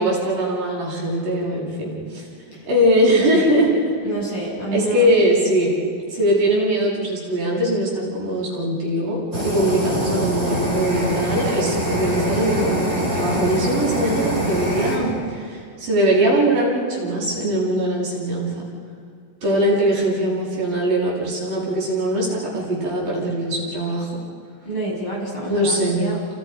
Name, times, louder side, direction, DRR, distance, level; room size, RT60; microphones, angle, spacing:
voice 1, 0.0-3.9 4.7-5.7 6.1-18.6 19.4-24.2 25.5-26.0, right 1 dB, 85° right, -5 dB, 8.5 m, -21 dB
voice 2, 3.1-3.5 4.0-5.1 9.9-10.3 24.6-26.2, right 1 dB, 35° left, -4 dB, 7.9 m, -28 dB
Fire, 9.3-15.0, equal, 20° right, 6.2 m, -24 dB
30.0 x 29.0 x 5.4 m, 2.2 s
omnidirectional pair, 3.9 m